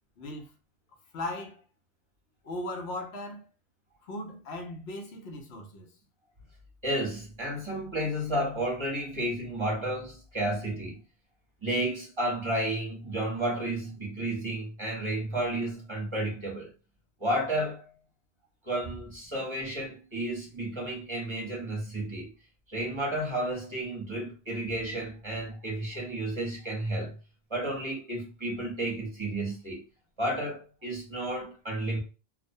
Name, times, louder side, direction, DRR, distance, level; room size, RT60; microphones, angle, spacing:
voice 1, 0.2-0.5 1.1-1.6 2.4-3.5 4.0-5.9, left 1 dB, 90° left, 0.9 m, -38 dB
voice 2, 6.8-11.0 11.6-16.7 17.2-17.9 18.6-22.3 22.7-27.1 27.5-29.8 30.2-32.0, right 1 dB, 30° right, 0.7 m, -32 dB
2.4 x 2.1 x 2.6 m
omnidirectional pair, 1.0 m